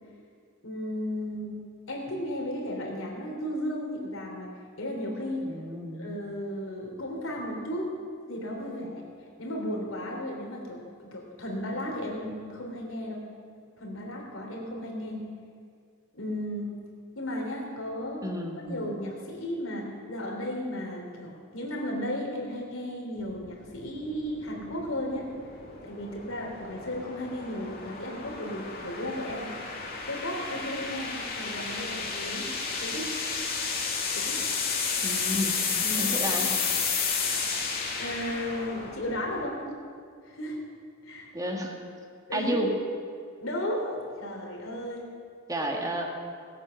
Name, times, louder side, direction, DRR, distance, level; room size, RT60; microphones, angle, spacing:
voice 1, 0.6-1.6 1.9-4.5 4.8-5.5 5.9-7.9 8.3-9.0 9.4-13.2 13.8-15.3 16.1-16.7 17.1-18.2 18.6-25.3 25.8-29.5 30.1-32.5 32.8-33.1 34.1-34.4 35.8-36.5 38.0-39.6 40.2-40.6 41.0-41.3 42.3-42.6 43.4-45.1, left 1 dB, 80° left, -1 dB, 3.2 m, -34 dB
voice 2, 5.4-6.0 18.2-18.6 35.0-35.6 36.0-36.5 41.3-41.7 42.3-42.7 45.5-46.1, equal, 15° right, 1 dB, 1.7 m, -31 dB
sound 1, 23.2-39.4, left 5 dB, 50° left, 2.0 m, -32 dB
18.5 x 8.4 x 6.4 m, 2.2 s
head